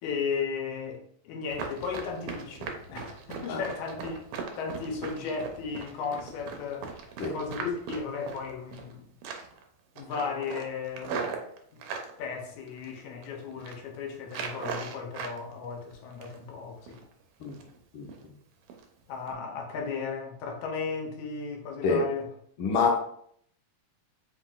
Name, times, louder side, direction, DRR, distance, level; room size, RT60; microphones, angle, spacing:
voice 1, 0.0-6.9 7.3-9.1 10.0-11.4 11.7-11.8 12.2-17.0 19.1-22.3, left 5 dB, 90° left, 2.2 m, -35 dB
Run, 1.5-8.9 9.2-9.6 10.0-12.1 12.7-13.2 13.5-13.8 14.3-15.4 15.7-16.5 16.9-17.0 17.4-17.8 18.1-18.2 18.7-18.8 19.2-19.3, right 5 dB, 90° right, 2.1 m, -38 dB
voice 2, 22.6-23.0, left 4 dB, 70° left, 1.2 m, -25 dB
5.0 x 2.4 x 3.7 m
omnidirectional pair, 3.3 m